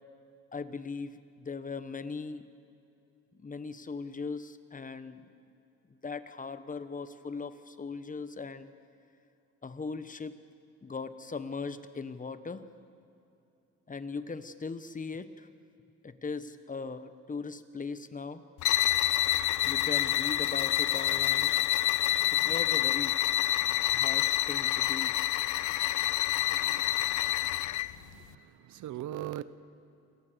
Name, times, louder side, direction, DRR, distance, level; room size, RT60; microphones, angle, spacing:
voice 1, 0.5-2.4 3.4-5.3 6.0-8.7 9.6-10.4 10.8-12.6 13.9-15.5 16.0-18.4 19.6-21.5 22.3-23.2 23.9-25.2, left 4 dB, 25° left, 12 dB, 1.2 m, -39 dB
sound 1, 18.6-27.9, left 13 dB, 75° left, 0.7 m, -27 dB
voice 2, 26.5-26.8 27.1-27.2 28.0-28.4 28.7-29.4, right 13 dB, 80° right, 16 dB, 0.9 m, -40 dB
28.0 x 19.0 x 7.0 m, 2.7 s
cardioid pair, 90°, 30 cm